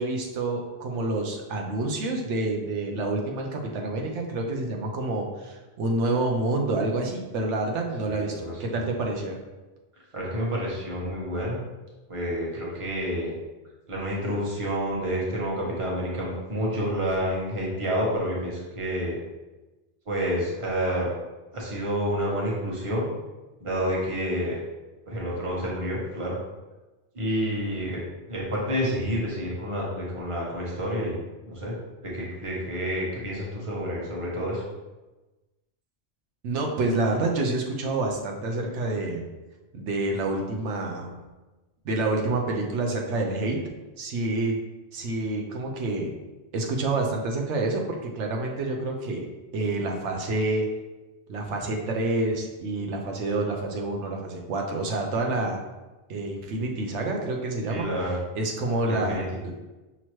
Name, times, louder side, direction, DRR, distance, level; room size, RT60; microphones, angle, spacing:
voice 1, 0.0-9.4 36.4-39.3 39.7-41.1 41.8-43.6 44.0-44.6 44.9-46.1 46.5-49.2 49.5-50.7 51.3-55.6 56.1-57.9 58.3-59.2, right 2 dB, 90° right, 1 dB, 1.0 m, -28 dB
voice 2, 8.0-8.8 10.1-11.6 12.1-13.3 13.9-19.2 20.1-21.1 21.5-23.1 23.6-24.6 25.1-26.4 27.1-28.0 28.3-31.2 31.4-31.8 32.0-34.6 57.7-58.2 58.9-59.2, equal, 30° right, -4 dB, 1.0 m, -29 dB
5.7 x 2.9 x 3.0 m, 1.1 s
omnidirectional pair, 1.2 m